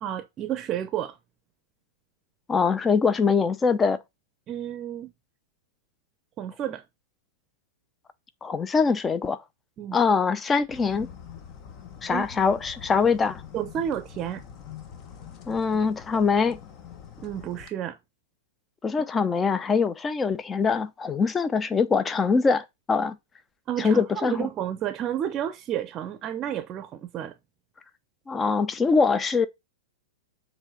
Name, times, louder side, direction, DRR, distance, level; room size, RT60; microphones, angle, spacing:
voice 1, 0.0-1.2 4.5-5.1 6.4-6.8 9.8-10.0 12.1-12.3 13.5-14.4 17.2-18.0 23.7-27.3, right 10 dB, 35° right, 0.7 m, -31 dB
voice 2, 2.5-4.0 8.4-9.4 9.9-11.1 12.0-13.4 15.5-16.6 18.8-23.2 23.8-24.5 28.3-29.5, left 5 dB, 20° left, 0.8 m, -23 dB
sound 1, 10.7-17.7, left 8 dB, 40° left, 1.3 m, -44 dB
7.2 x 3.4 x 5.2 m
hypercardioid pair, 110°, 0 cm